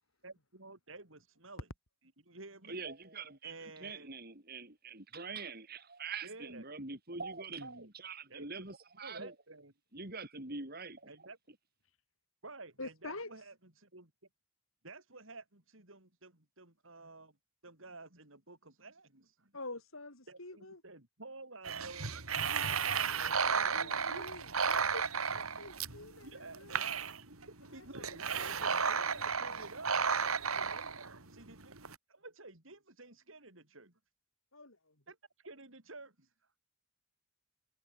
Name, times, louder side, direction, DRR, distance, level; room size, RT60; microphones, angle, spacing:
voice 1, 0.2-1.7 2.2-2.8 3.4-4.1 6.2-6.6 7.6-7.9 8.3-8.5 9.0-9.7 11.1-11.4 12.4-14.1 14.8-17.4 17.6-19.5 20.3-24.6 26.2-26.7 27.3-33.9 35.1-36.3, right 3 dB, 65° right, 4.3 m, -52 dB
voice 2, 2.6-9.3 9.9-11.3, right 4 dB, 45° right, 4.1 m, -44 dB
voice 3, 12.8-13.3 19.5-20.8 23.5-26.9 27.7-29.6 34.5-34.9, left 2 dB, 75° left, 6.6 m, -48 dB
sound 1, 21.6-32.0, right 6 dB, 85° right, 4.0 m, -33 dB
head